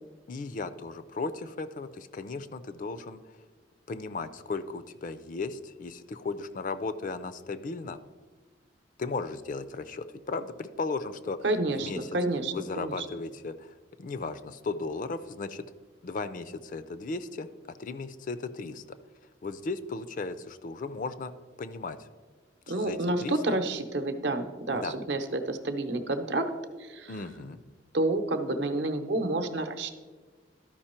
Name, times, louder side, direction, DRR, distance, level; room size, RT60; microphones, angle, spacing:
voice 1, 0.3-3.2 3.9-8.0 9.0-11.4 11.7-12.1 12.5-15.6 16.0-17.5 17.8-19.0 19.4-21.3 21.6-22.1 22.7-23.6 24.7-24.9 27.1-27.6, left 3 dB, 45° left, 12 dB, 0.4 m, -36 dB
voice 2, 11.4-13.1 22.7-26.5 26.8-27.1 27.9-29.9, right 2 dB, 65° right, 7 dB, 0.8 m, -29 dB
12.5 x 5.2 x 4.3 m, 1.4 s
head